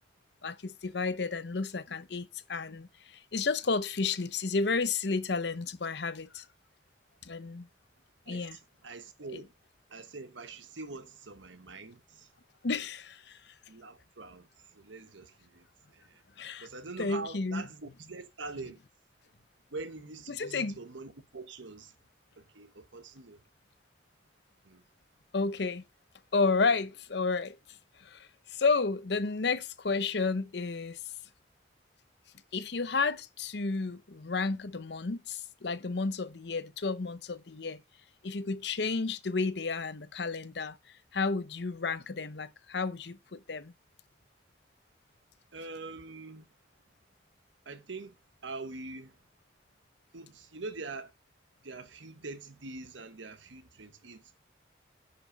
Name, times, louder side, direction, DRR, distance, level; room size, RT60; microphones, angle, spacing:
voice 1, 0.4-2.9 3.3-6.4 7.2-7.7 8.3-8.6 9.3-9.4 12.6-13.4 16.4-16.7 17.0-17.6 20.3-20.8 25.3-25.8 26.3-27.6 28.0-31.0 32.5-37.8 38.2-40.8 41.1-43.7, left 4 dB, 65° left, 0.7 m, -31 dB
voice 2, 8.3-9.5 9.9-12.3 13.7-15.6 15.9-16.2 16.6-18.8 19.7-21.9 22.4-23.4 24.6-24.8 45.5-46.4 47.6-48.1 48.4-49.1 50.1-51.1 51.6-54.4, right 3 dB, 85° right, 1.2 m, -44 dB
9.6 x 5.9 x 5.1 m
head